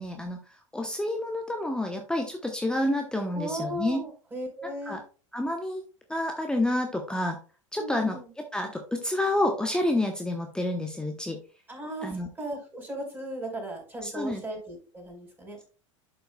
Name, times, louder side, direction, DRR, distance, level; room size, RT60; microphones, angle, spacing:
voice 1, 0.0-4.0 4.6-5.0 5.3-5.8 6.1-7.4 7.7-8.2 8.5-11.4 12.0-12.3 14.0-14.4, left 1 dB, 5° left, 3 dB, 0.9 m, -29 dB
voice 2, 3.3-5.0 7.8-8.3 11.7-15.6, right 1 dB, 10° right, 0 dB, 4.3 m, -37 dB
11.0 x 5.6 x 2.3 m, 0.37 s
figure-of-eight pair, 85°, 17 cm